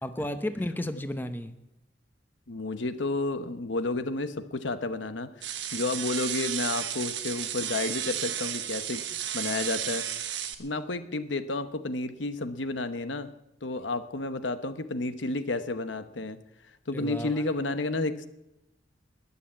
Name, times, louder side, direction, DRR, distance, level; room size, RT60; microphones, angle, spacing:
voice 1, 0.0-1.6 16.9-17.5, left 1 dB, 10° left, 9 dB, 0.8 m, -33 dB
voice 2, 2.5-9.0 9.3-10.1 10.6-13.3 13.6-16.4 16.9-18.3, left 2 dB, 90° left, 10 dB, 1.1 m, -31 dB
sound 1, 5.4-10.5, right 10 dB, 70° right, 1.4 m, -33 dB
21.0 x 7.1 x 8.6 m, 0.89 s
head